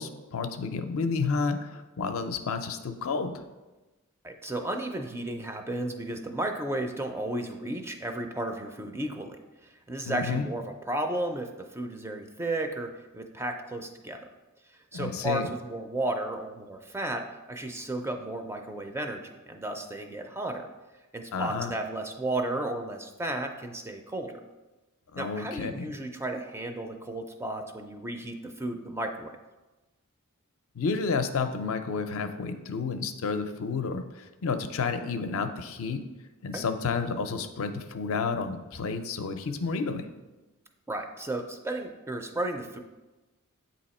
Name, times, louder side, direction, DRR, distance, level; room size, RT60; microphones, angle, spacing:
voice 1, 0.0-3.4 10.1-10.4 14.9-15.5 21.3-21.7 25.1-25.9 30.8-36.1 36.4-40.1, left 4 dB, 65° left, 7 dB, 0.5 m, -31 dB
voice 2, 4.2-9.4 9.6-14.2 14.9-20.7 21.1-24.4 25.2-29.4 36.5-36.6 40.9-42.8, right 1 dB, 10° right, 5 dB, 0.4 m, -33 dB
8.0 x 2.8 x 4.2 m, 1.1 s
head